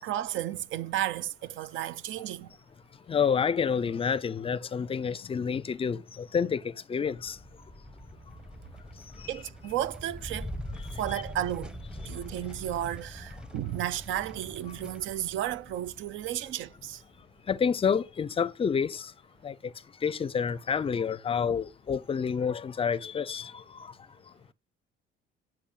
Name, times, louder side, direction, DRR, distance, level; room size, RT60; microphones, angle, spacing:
voice 1, 0.0-2.6 9.3-10.5 11.0-11.8 12.0-17.0, right 12 dB, 70° right, 0.7 m, -33 dB
voice 2, 3.1-6.6 6.9-7.4 17.5-19.0 19.4-19.5 20.0-23.5, left 6 dB, 25° left, 0.5 m, -28 dB
sound 1, 7.2-17.7, equal, 5° right, 1.0 m, -43 dB
10.0 x 6.1 x 8.3 m
cardioid pair, 150°, 21 cm